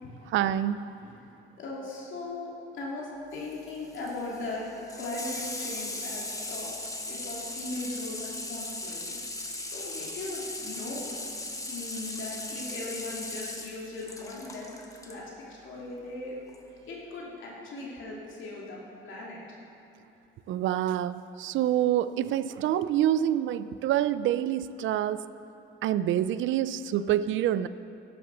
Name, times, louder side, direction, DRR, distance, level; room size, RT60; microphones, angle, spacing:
voice 1, 0.3-0.8 20.5-25.2 25.8-27.7, right 11 dB, 75° right, 14 dB, 0.4 m, -27 dB
voice 2, 1.6-6.8 7.1-9.2 9.6-11.1 11.6-14.7 15.0-16.4 16.9-19.4, left 2 dB, 75° left, -4 dB, 2.6 m, -38 dB
Water tap faucet / Sink (filling or washing), 3.3-15.2 16.5-16.6, left 2 dB, 15° left, 1.3 m, -38 dB
11.5 x 7.8 x 6.8 m, 2.9 s
cardioid pair, 90°, 20 cm